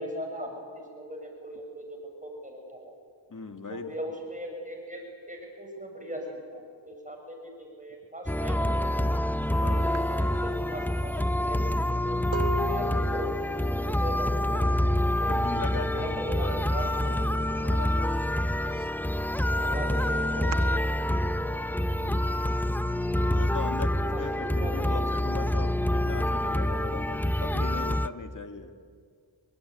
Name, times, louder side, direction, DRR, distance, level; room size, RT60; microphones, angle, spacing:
voice 1, 0.0-2.9 3.7-8.9 9.6-12.2 12.7-15.4 15.9-17.6 19.5-20.6 20.9-21.5 23.8-24.2 24.5-25.1, equal, 15° right, 1 dB, 7.0 m, -39 dB
voice 2, 3.3-3.9 9.6-9.9 12.6-12.7 14.4-14.7 15.3-18.2 18.7-18.9 22.0-22.3 23.3-23.9 24.2-28.7, left 4 dB, 40° left, 6 dB, 2.4 m, -40 dB
sound 1, 8.3-28.1, left 1 dB, 5° left, 0.6 m, -27 dB
sound 2, 9.4-9.6 9.9-15.6 15.9-16.4 16.7-17.8 18.2-20.8, right 2 dB, 90° right, 1.3 m, -39 dB
25.5 x 23.5 x 9.6 m, 2.1 s
cardioid pair, 70°, 47 cm